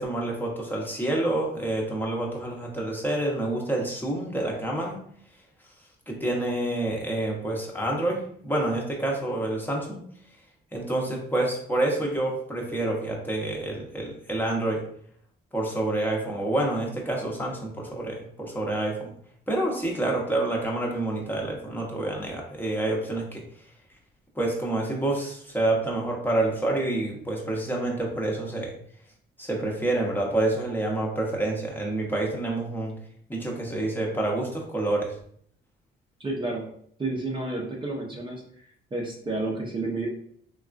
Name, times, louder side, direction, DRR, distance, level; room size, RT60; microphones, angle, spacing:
voice 1, 0.0-5.0 6.1-10.0 10.7-14.8 15.5-19.1 19.5-23.4 24.4-28.7 29.4-32.9 33.3-35.1, right 2 dB, 10° left, -2 dB, 0.8 m, -28 dB
voice 2, 36.2-36.6 37.0-38.4 38.9-40.1, right 2 dB, 25° right, -2 dB, 0.6 m, -30 dB
3.5 x 2.3 x 2.4 m, 0.63 s
cardioid pair, 90°, 20 cm